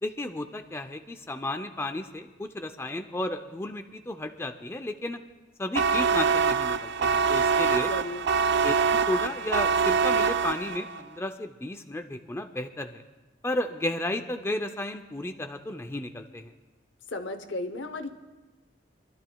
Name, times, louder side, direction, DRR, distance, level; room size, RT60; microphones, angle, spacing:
voice 1, 0.0-5.2 5.6-7.9 8.6-8.7 9.1-13.0 13.4-16.5, left 1 dB, 15° left, 6 dB, 0.5 m, -33 dB
sound 1, 5.7-11.0, right 5 dB, 65° right, 0.3 m, -24 dB
voice 2, 7.8-8.2 17.1-18.1, left 2 dB, 70° left, 8 dB, 0.9 m, -34 dB
26.0 x 12.0 x 2.3 m, 1.2 s
head